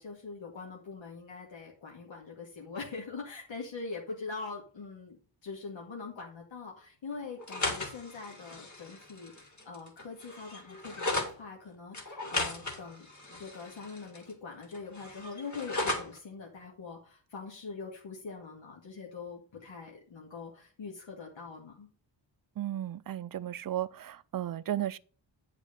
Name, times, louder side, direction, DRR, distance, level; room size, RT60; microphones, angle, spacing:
voice 1, 0.0-13.1 13.4-21.9, left 4 dB, 90° left, 2.2 m, -43 dB
sound 1, 7.4-11.3 11.9-14.3 14.6-16.2, left 2 dB, 40° left, 2.0 m, -36 dB
voice 2, 22.6-25.0, right 12 dB, 50° right, 0.4 m, -34 dB
9.1 x 4.9 x 5.2 m
wide cardioid pair, 160°, 44 cm